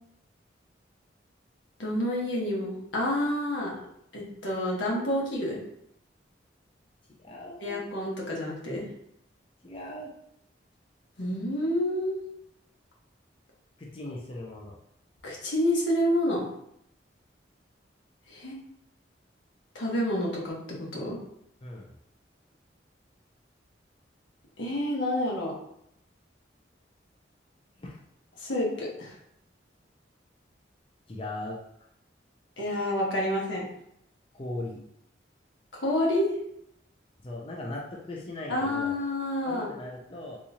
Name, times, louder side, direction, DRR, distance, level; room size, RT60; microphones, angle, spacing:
voice 1, 1.8-3.7 4.1-5.6 7.6-8.8 11.2-12.2 15.2-16.4 18.3-18.6 19.7-21.2 24.6-25.6 28.4-29.1 32.6-33.6 35.7-36.3 38.5-39.7, left 1 dB, 85° left, -3 dB, 1.2 m, -28 dB
voice 2, 7.2-7.8 9.6-10.1 13.8-14.8 21.6-21.9 27.8-28.0 31.1-31.6 34.3-34.8 37.2-38.9 39.5-40.4, left 1 dB, 30° left, -3 dB, 0.5 m, -38 dB
3.6 x 3.0 x 2.7 m, 0.74 s
head